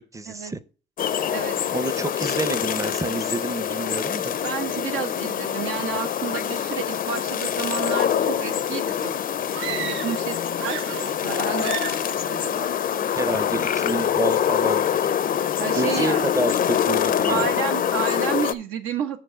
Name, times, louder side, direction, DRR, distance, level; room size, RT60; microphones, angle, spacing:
voice 1, 0.1-0.6 1.7-4.3 13.2-14.9 15.7-17.5, right 3 dB, 15° right, 0.5 m, -29 dB
sound 1, 1.0-18.5, left 9 dB, 45° left, 0.4 m, -25 dB
voice 2, 1.3-1.7 4.4-9.1 9.4-12.7 15.6-16.3 17.3-19.2, right 8 dB, 85° right, 1.1 m, -31 dB
sound 2, 9.5-10.3 10.5-11.3 11.6-12.1, right 12 dB, 70° right, 0.4 m, -33 dB
6.6 x 4.6 x 6.2 m
cardioid pair, 90°, 20 cm